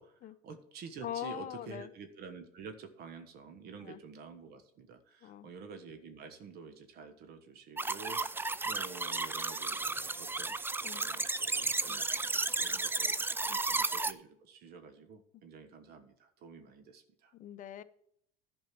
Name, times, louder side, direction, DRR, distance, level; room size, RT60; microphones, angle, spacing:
voice 1, 0.0-13.2 13.7-17.3, right 5 dB, 60° right, 8 dB, 1.4 m, -49 dB
voice 2, 1.0-1.9 3.8-4.0 5.2-5.5 10.8-11.0 11.9-12.0 13.5-13.6 17.3-17.8, left 11 dB, 45° left, 10 dB, 0.7 m, -42 dB
sound 1, 7.8-14.1, right 3 dB, 10° right, 0.4 m, -33 dB
11.0 x 5.3 x 7.7 m, 0.69 s
supercardioid pair, 85°, 19 cm